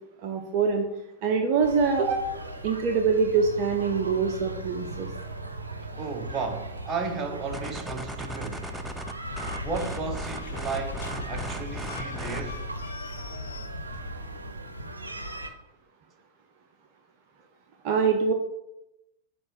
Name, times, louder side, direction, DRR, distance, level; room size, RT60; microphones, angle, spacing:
voice 1, 0.2-0.9 1.2-2.2 2.6-5.1 17.8-18.3, right 5 dB, 45° right, 0.7 m, -24 dB
sound 1, 1.6-15.5, right 1 dB, 80° right, 0.7 m, -39 dB
voice 2, 5.9-8.7 9.6-12.7, right 4 dB, 25° right, 0.9 m, -34 dB
sound 2, 7.5-12.6, right 1 dB, 5° right, 0.4 m, -38 dB
sound 3, 9.2-14.5, left 3 dB, 65° left, 0.7 m, -38 dB
7.6 x 2.6 x 5.7 m
figure-of-eight pair, 95°, 0 cm